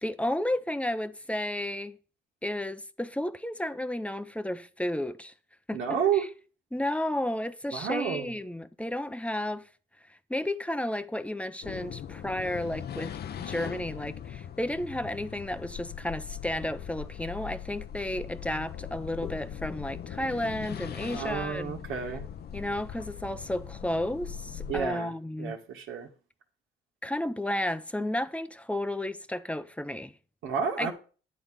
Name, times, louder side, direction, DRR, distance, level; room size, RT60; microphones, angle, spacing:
voice 1, 0.0-2.0 2.4-5.3 5.7-6.3 6.7-9.7 10.1-21.8 22.5-25.6 27.0-30.1 30.8-30.9, left 1 dB, 5° left, 0.6 m, -32 dB
voice 2, 5.7-6.2 7.7-8.3 21.1-22.3 24.7-25.1 25.4-26.1 30.4-30.9, right 7 dB, 85° right, 1.6 m, -30 dB
sound 1, 11.6-24.9, left 9 dB, 55° left, 0.7 m, -40 dB
10.5 x 4.0 x 7.5 m
cardioid pair, 90°, 20 cm